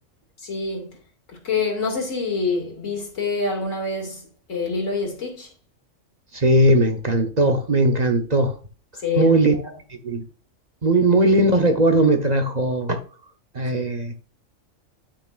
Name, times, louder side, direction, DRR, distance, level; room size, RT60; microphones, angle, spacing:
voice 1, 0.4-0.9 1.3-5.5 9.0-9.7 13.6-13.7, left 4 dB, 85° left, 2.7 m, -26 dB
voice 2, 6.3-8.5 9.2-9.5 10.0-10.2 10.8-13.0 13.5-14.1, right 1 dB, 35° right, 1.0 m, -18 dB
11.5 x 5.9 x 2.5 m
omnidirectional pair, 1.3 m